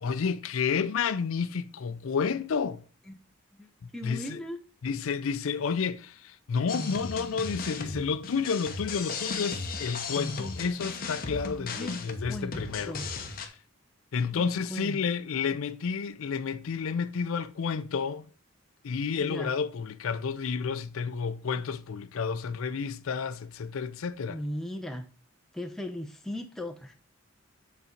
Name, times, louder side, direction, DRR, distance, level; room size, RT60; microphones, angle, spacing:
voice 1, 0.0-2.8 3.8-4.4 4.8-13.0 14.1-18.3 18.8-24.4, left 5 dB, 75° left, 0.4 m, -31 dB
voice 2, 3.5-4.6 11.7-13.1 14.3-15.0 19.2-19.5 24.3-25.0 25.5-26.9, left 1 dB, ahead, 0.7 m, -38 dB
sound 1, 6.7-13.5, left 4 dB, 40° left, 1.0 m, -36 dB
8.2 x 4.0 x 4.4 m
head